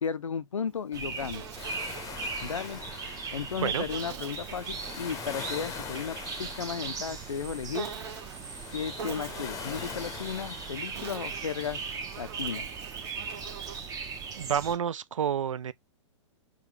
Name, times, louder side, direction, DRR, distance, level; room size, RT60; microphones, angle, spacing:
voice 1, 0.0-1.4 2.4-2.8 3.3-7.9 8.7-11.8 12.2-12.7, left 7 dB, 90° left, 0.5 m, -34 dB
Insect, 0.6-2.8 3.9-6.0 7.7-8.5 9.0-10.1 10.7-14.0, right 6 dB, 60° right, 1.1 m, -45 dB
sound 1, 0.9-14.8, right 5 dB, 20° right, 0.9 m, -39 dB
sound 2, 1.5-11.9, left 6 dB, 20° left, 0.7 m, -43 dB
voice 2, 14.4-15.7, right 8 dB, 80° right, 0.4 m, -29 dB
4.9 x 2.3 x 3.0 m
hypercardioid pair, 115°, 16 cm